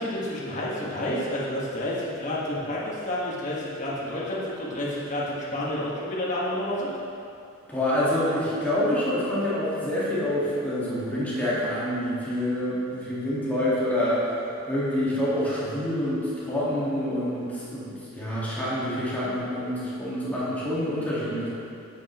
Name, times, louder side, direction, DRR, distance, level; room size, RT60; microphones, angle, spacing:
voice 1, 0.0-6.9, left 1 dB, 40° left, -7 dB, 1.5 m, -30 dB
voice 2, 7.7-14.3 14.7-21.5, left 1 dB, 10° left, -10 dB, 1.7 m, -27 dB
8.4 x 7.2 x 3.0 m, 2.6 s
head